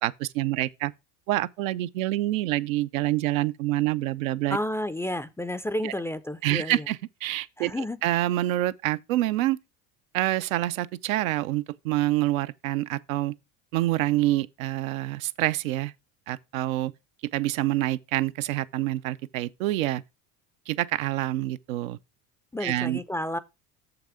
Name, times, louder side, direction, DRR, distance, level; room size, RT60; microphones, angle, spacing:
voice 1, 0.0-0.9 1.3-4.6 5.8-5.9 6.4-9.6 10.1-13.3 13.7-15.9 16.3-16.9 17.3-20.0 20.7-22.0 22.6-23.0, right 16 dB, 90° right, 0.6 m, -27 dB
voice 2, 4.5-6.9 7.6-8.0 22.5-23.4, left 1 dB, 5° left, 0.3 m, -31 dB
6.6 x 5.9 x 4.9 m
supercardioid pair, 95°, 39 cm